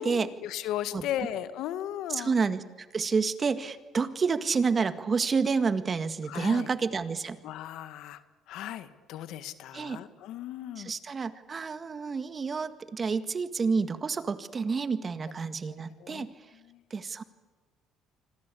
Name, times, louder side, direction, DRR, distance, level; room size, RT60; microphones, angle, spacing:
voice 1, 0.0-2.3 6.3-6.7 7.4-8.2 8.5-10.9 15.7-16.3 16.5-16.8, left 11 dB, 70° left, 11 dB, 1.7 m, -36 dB
voice 2, 2.1-2.6 2.9-7.4 9.7-10.0 10.8-16.3 16.9-17.2, right 5 dB, 35° right, 10 dB, 1.8 m, -29 dB
26.0 x 25.5 x 8.5 m, 1.3 s
supercardioid pair, 85°, 0 cm